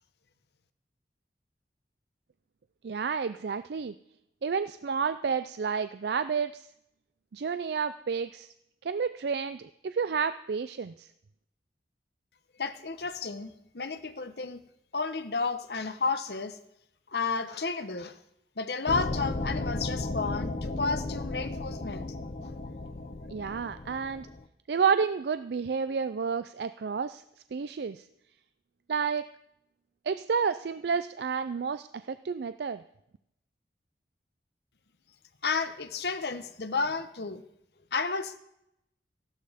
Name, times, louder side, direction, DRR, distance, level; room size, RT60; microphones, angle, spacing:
voice 1, 2.8-3.9 4.4-6.7 7.3-8.5 8.8-11.1 23.3-24.3 24.7-27.2 27.5-28.0 28.9-29.3 30.1-32.8, right 6 dB, 70° right, 12 dB, 0.4 m, -30 dB
voice 2, 12.6-14.6 14.9-16.6 17.1-18.2 18.6-22.1 35.4-37.4 37.9-38.4, left 4 dB, 70° left, 10 dB, 1.0 m, -32 dB
sound 1, 18.9-24.4, left 2 dB, 40° left, 0.7 m, -35 dB
15.0 x 12.0 x 5.0 m, 0.78 s
head